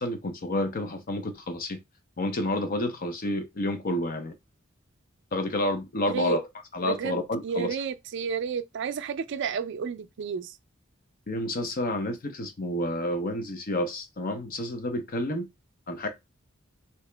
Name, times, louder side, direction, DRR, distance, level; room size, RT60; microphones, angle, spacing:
voice 1, 0.0-1.8 2.2-4.3 5.3-6.4 6.7-7.8 11.3-15.5 15.9-16.1, left 1 dB, 45° left, 0.6 m, -29 dB
voice 2, 6.1-6.4 6.8-7.2 7.4-10.6, right 6 dB, 65° right, 0.4 m, -31 dB
2.9 x 2.7 x 3.3 m
head